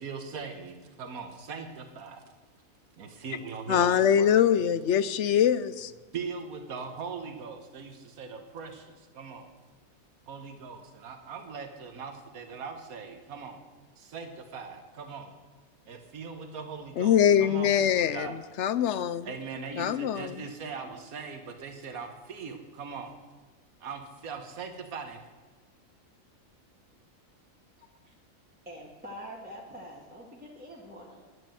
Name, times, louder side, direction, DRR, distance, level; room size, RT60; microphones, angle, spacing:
voice 1, 0.0-2.2 3.0-4.3 6.1-9.5 10.3-13.6 14.0-15.3 15.9-18.4 19.2-23.1 23.8-25.2, right 5 dB, 90° right, 1.6 m, -40 dB
voice 2, 3.7-5.9 17.0-19.3 19.8-20.5, left 9 dB, 65° left, 0.8 m, -24 dB
voice 3, 27.8-28.1 28.7-31.4, equal, 5° right, 2.0 m, -45 dB
11.0 x 10.0 x 7.8 m
omnidirectional pair, 1.5 m